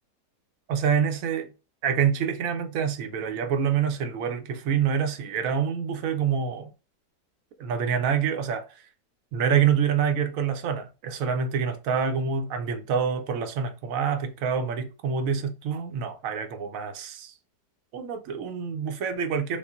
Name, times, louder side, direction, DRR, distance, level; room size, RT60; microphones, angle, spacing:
voice 1, 0.7-1.5 1.8-6.7 7.6-8.6 9.3-17.3 17.9-19.6, right 7 dB, 65° right, 0.9 m, -26 dB
5.6 x 2.0 x 2.3 m
omnidirectional pair, 1.9 m